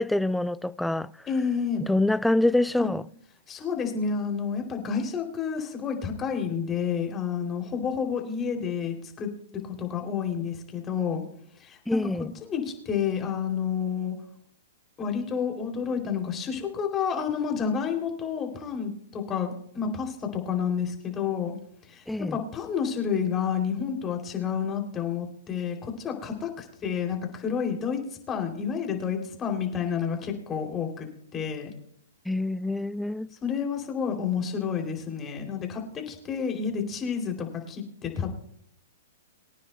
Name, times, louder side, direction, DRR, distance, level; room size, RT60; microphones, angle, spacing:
voice 1, 0.0-1.1 1.9-3.1 11.9-12.4 22.1-22.4 32.3-33.3, left 1 dB, 5° left, 0.3 m, -25 dB
voice 2, 1.3-1.9 2.8-2.9 3.5-11.2 11.6-12.0 12.4-14.1 15.0-21.5 21.9-28.0 28.3-31.1 31.3-31.7 33.4-38.3, left 7 dB, 25° left, 3.0 m, -30 dB
23.5 x 9.7 x 2.2 m
hypercardioid pair, 125°, 0 cm